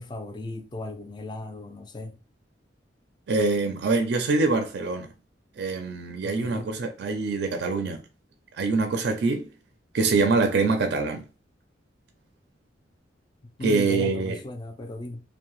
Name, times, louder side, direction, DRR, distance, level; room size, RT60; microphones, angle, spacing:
voice 1, 0.0-2.2 6.2-6.7 13.6-15.2, left 2 dB, 25° left, 0.3 m, -36 dB
voice 2, 3.3-5.1 5.6-8.0 8.6-9.5 9.9-11.2 13.6-14.4, right 3 dB, 60° right, 0.4 m, -24 dB
2.6 x 2.1 x 3.0 m
head